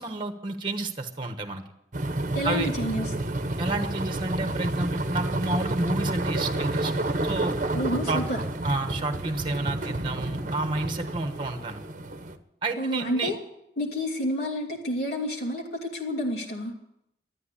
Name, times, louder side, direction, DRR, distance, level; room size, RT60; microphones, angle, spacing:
voice 1, 0.0-1.6 2.4-2.7 3.6-6.9 7.2-7.5 8.1-8.2 8.6-11.8 12.6-13.3, right 2 dB, 30° right, 7 dB, 1.2 m, -30 dB
sound 1, 1.9-12.4, right 2 dB, 45° right, 1.0 m, -30 dB
voice 2, 2.3-3.1 7.7-8.4 12.8-13.4 13.8-16.7, equal, 65° left, -2 dB, 2.9 m, -29 dB
13.0 x 9.5 x 9.8 m, 0.79 s
head